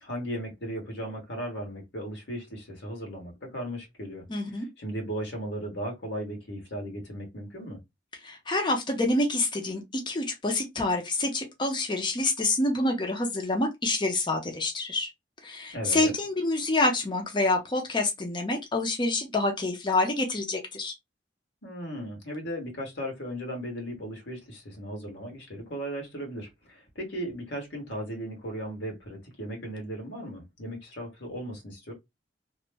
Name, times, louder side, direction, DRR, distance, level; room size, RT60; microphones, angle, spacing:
voice 1, 0.0-7.8 15.7-16.1 21.6-31.9, equal, 90° left, 1.5 m, -36 dB
voice 2, 4.3-4.7 8.2-15.1 15.4-20.9, left 2 dB, 25° left, 0.6 m, -27 dB
3.0 x 2.1 x 3.3 m
head